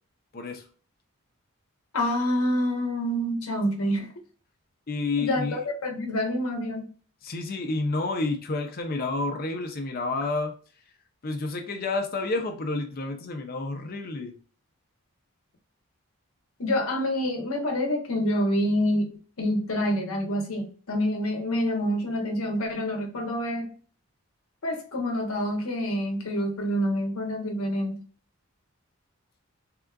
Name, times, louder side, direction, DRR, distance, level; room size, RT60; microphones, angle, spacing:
voice 1, 0.3-0.7 4.9-5.6 7.2-10.5 11.2-14.3, left 3 dB, 40° left, 4 dB, 0.5 m, -30 dB
voice 2, 1.9-4.1 5.2-6.9 16.6-19.1 19.4-23.7 24.6-28.0, equal, 75° left, 3 dB, 0.8 m, -27 dB
3.6 x 2.4 x 2.2 m, 0.40 s
head